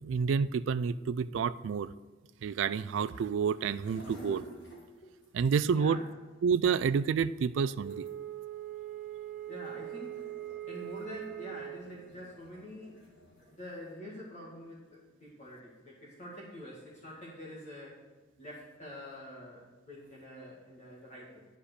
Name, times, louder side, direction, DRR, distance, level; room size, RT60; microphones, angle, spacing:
voice 1, 0.0-1.9 2.4-4.4 5.3-6.0 6.4-8.0, right 6 dB, 75° right, 15 dB, 0.3 m, -29 dB
sound 1, 3.6-13.5, right 1 dB, 65° left, 2.4 m, -54 dB
voice 2, 5.7-6.0 9.5-10.3 10.7-13.0 13.5-18.1 18.4-21.5, left 1 dB, 35° left, -5 dB, 1.8 m, -46 dB
Wind instrument woodwind instrument, 7.8-11.9, right 12 dB, 40° right, 1.0 m, -41 dB
10.0 x 5.0 x 6.6 m, 1.3 s
head